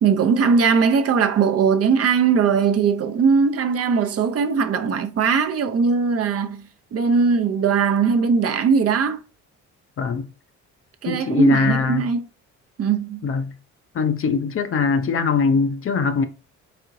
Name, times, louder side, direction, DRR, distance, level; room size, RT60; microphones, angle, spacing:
voice 1, 0.0-6.6 6.9-9.2 11.0-12.3 12.8-13.3, right 5 dB, 50° right, 0.6 m, -19 dB
voice 2, 10.0-10.3 11.1-12.1 13.2-13.5 13.9-16.3, left 5 dB, 45° left, 0.6 m, -21 dB
4.3 x 3.6 x 2.6 m
cardioid pair, 90°, 30 cm